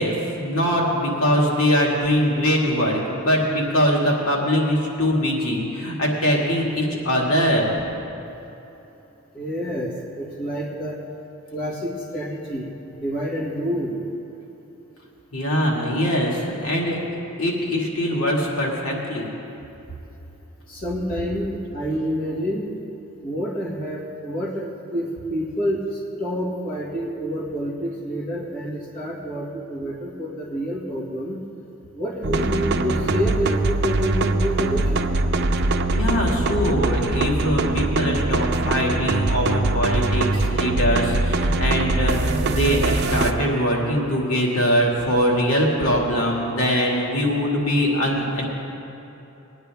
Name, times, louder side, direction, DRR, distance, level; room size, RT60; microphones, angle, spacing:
voice 1, 0.0-7.7 15.3-17.0 17.4-19.3 35.9-48.4, equal, 80° left, -2 dB, 2.1 m, -22 dB
voice 2, 9.3-11.0 11.5-14.0 20.7-22.7 23.2-31.4 31.9-35.1, equal, 40° left, -4 dB, 1.9 m, -28 dB
sound 1, 32.2-43.3, right 2 dB, 50° right, 0.6 m, -22 dB
20.5 x 9.6 x 3.5 m, 2.9 s
head